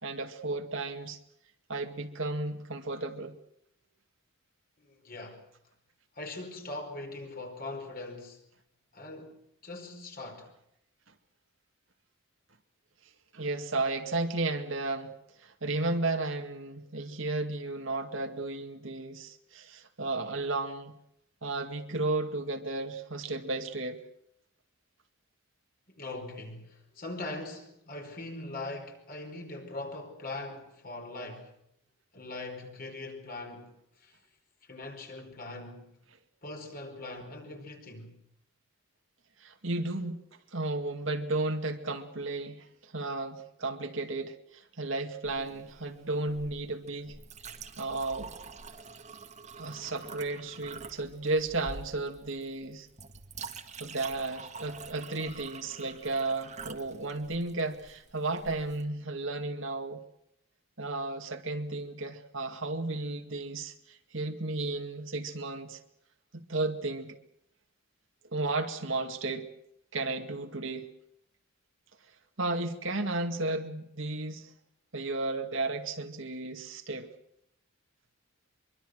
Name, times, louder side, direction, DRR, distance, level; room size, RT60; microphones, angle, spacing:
voice 1, 0.0-1.2 1.7-3.4 13.3-21.0 21.4-24.0 39.4-40.2 40.5-47.2 47.8-48.3 49.6-52.9 53.8-60.0 60.8-65.8 66.3-67.2 68.3-69.5 69.9-71.0 72.4-74.5 74.9-77.1, right 2 dB, 65° right, 2.2 m, -33 dB
voice 2, 4.8-5.4 6.1-8.4 8.9-10.5 25.9-31.6 32.1-34.2 34.6-35.9 36.4-38.2, left 2 dB, 45° left, 5.0 m, -41 dB
Chink clink, 45.2-58.8, right 4 dB, 35° right, 1.8 m, -47 dB
24.5 x 23.5 x 6.6 m
head